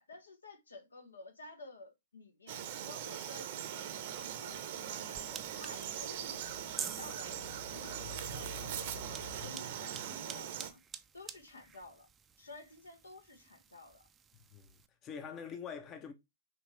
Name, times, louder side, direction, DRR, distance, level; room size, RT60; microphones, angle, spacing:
voice 1, 0.0-9.0 9.4-10.8 11.1-12.1 12.4-14.1, left 2 dB, 80° left, 1.2 m, -53 dB
Frog, 2.5-10.7, right 10 dB, 50° right, 0.8 m, -41 dB
sound 1, 3.8-9.5, left 1 dB, 50° left, 3.2 m, -51 dB
sound 2, 5.1-14.9, right 6 dB, 15° right, 0.5 m, -50 dB
voice 2, 9.4-9.8 14.5-16.1, left 7 dB, 25° left, 0.7 m, -46 dB
5.8 x 2.8 x 3.2 m
figure-of-eight pair, 110°, 0 cm